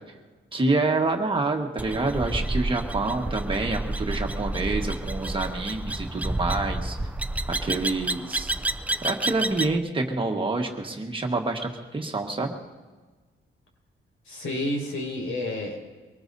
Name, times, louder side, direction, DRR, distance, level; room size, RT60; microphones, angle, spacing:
voice 1, 0.5-7.0 7.5-8.5 9.0-12.6, right 3 dB, 25° right, 2 dB, 1.4 m, -27 dB
sound 1, 1.8-9.8, right 2 dB, 5° right, 0.4 m, -30 dB
voice 2, 14.3-15.8, left 1 dB, 80° left, -1 dB, 5.2 m, -30 dB
23.5 x 19.0 x 2.7 m, 1.3 s
cardioid pair, 130°, 21 cm